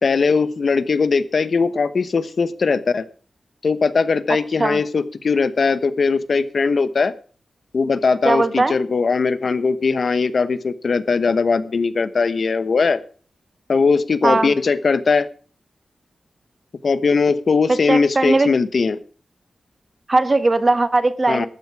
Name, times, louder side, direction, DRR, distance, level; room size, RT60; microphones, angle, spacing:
voice 1, 0.0-3.0 3.6-7.1 7.7-13.0 13.7-15.3 16.8-19.0 21.3-21.5, left 4 dB, 55° left, 14 dB, 1.0 m, -19 dB
voice 2, 8.2-8.8 14.2-14.5 17.7-18.5 20.1-21.5, right 2 dB, 30° right, 12 dB, 1.2 m, -18 dB
13.5 x 9.5 x 5.9 m, 0.40 s
wide cardioid pair, 120°, 0 cm